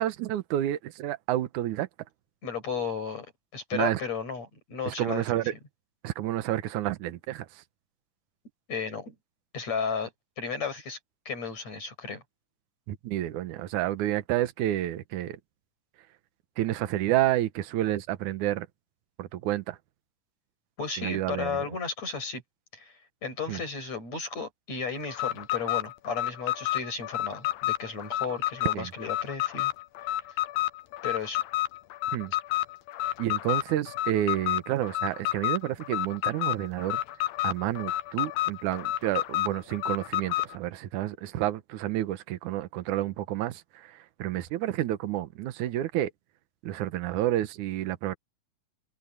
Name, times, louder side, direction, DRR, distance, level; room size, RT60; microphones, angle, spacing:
voice 1, 0.0-1.9 3.7-4.0 4.9-5.5 6.0-7.5 12.9-15.4 16.6-18.7 19.2-19.8 21.0-21.7 23.5-23.6 28.8-28.9 32.1-32.3 33.2-37.0 37.4-43.9 44.2-46.1 46.6-48.2, right 13 dB, 70° right, 2.3 m, -29 dB
voice 2, 2.4-3.3 3.5-5.6 8.7-9.1 9.5-10.1 10.4-11.0 11.3-12.2 20.8-22.4 22.7-22.9 23.2-29.7 30.1-30.2 31.0-31.4, left 5 dB, 50° left, 8.0 m, -34 dB
Alarm, 25.1-40.6, left 15 dB, 85° left, 2.7 m, -30 dB
omnidirectional pair, 4.1 m